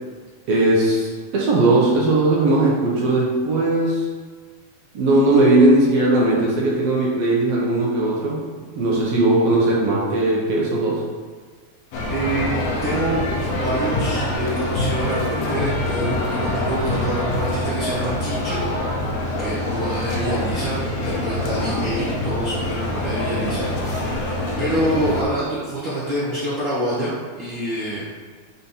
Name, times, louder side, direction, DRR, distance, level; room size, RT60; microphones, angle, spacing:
voice 1, 0.5-4.1 4.9-8.5 8.8-11.0, right 2 dB, 85° right, -5 dB, 1.4 m, -18 dB
sound 1, 11.9-25.2, left 1 dB, 80° left, 1.4 m, -25 dB
voice 2, 12.1-13.2 13.5-18.7 19.4-28.0, right 1 dB, 70° right, -9 dB, 1.1 m, -26 dB
5.6 x 4.2 x 5.6 m, 1.5 s
omnidirectional pair, 4.3 m